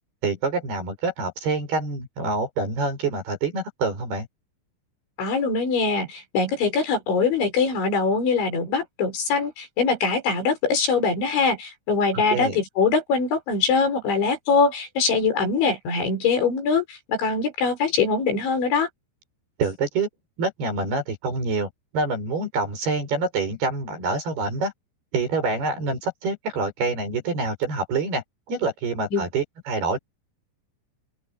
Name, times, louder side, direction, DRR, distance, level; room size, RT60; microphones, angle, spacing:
voice 1, 0.2-4.3 12.3-12.6 19.6-20.1 20.4-24.7 25.1-30.0, right 3 dB, 55° right, 9.0 m, -26 dB
voice 2, 5.2-18.9 29.1-29.2, left 4 dB, 75° left, 8.7 m, -23 dB
open air
omnidirectional pair, 5.3 m